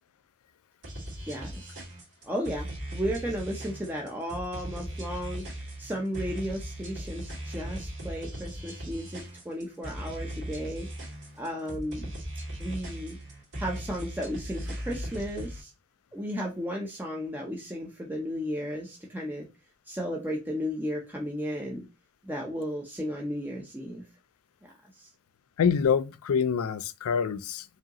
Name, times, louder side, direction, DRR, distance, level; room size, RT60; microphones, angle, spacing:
sound 1, 0.8-15.6, right 1 dB, 60° right, 2.1 m, -38 dB
voice 1, 1.3-1.8 2.2-10.9 11.4-12.1 12.6-13.2 13.6-15.7 16.1-19.5 19.9-21.9 22.2-24.1 25.0-25.1, equal, 10° right, 0.6 m, -34 dB
voice 2, 25.6-27.6, left 7 dB, 80° left, 0.4 m, -26 dB
4.8 x 2.8 x 2.8 m
head